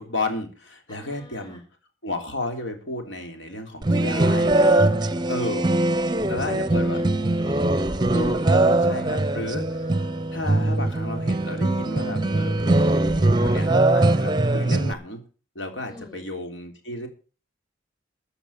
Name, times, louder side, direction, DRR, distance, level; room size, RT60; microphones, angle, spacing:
voice 1, 0.0-1.6 2.0-4.7 5.3-5.7 6.3-7.0 8.1-9.6 10.3-13.7 13.9-15.2 15.6-17.1, left 2 dB, 75° left, 4 dB, 3.4 m, -32 dB
voice 2, 0.9-1.6 5.2-8.1 9.1-10.2 14.4-14.9 15.9-16.3, left 3 dB, 20° left, 4 dB, 4.5 m, -46 dB
sound 1, 3.8-14.9, right 2 dB, 25° right, 0.7 m, -21 dB
14.0 x 7.0 x 7.3 m, 0.37 s
head